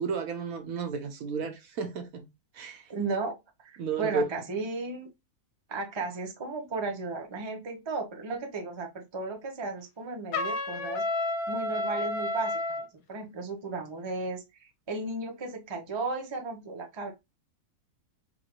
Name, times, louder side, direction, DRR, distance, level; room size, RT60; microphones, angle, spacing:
voice 1, 0.0-2.3 2.5-2.9 3.8-4.2, right 5 dB, 70° right, 1.1 m, -32 dB
voice 2, 2.9-3.4 3.6-5.1 5.7-11.0 11.5-12.8 13.1-17.1, right 3 dB, 25° right, 0.6 m, -35 dB
Trumpet, 10.3-12.9, left 2 dB, 70° left, 1.1 m, -30 dB
3.8 x 2.4 x 3.0 m
omnidirectional pair, 1.6 m